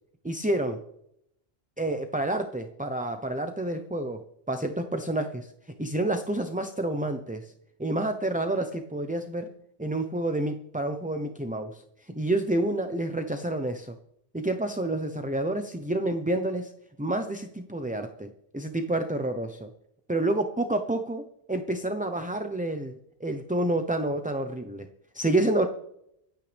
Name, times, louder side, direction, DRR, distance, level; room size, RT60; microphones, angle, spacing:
voice 1, 0.2-0.8 1.8-4.2 4.5-5.5 5.8-7.5 7.8-9.5 9.8-11.8 12.1-13.9 14.3-16.7 17.0-19.7 20.1-24.9 25.1-25.7, right 1 dB, 10° right, 6 dB, 0.8 m, -29 dB
25.5 x 9.2 x 3.5 m, 0.75 s
omnidirectional pair, 1.0 m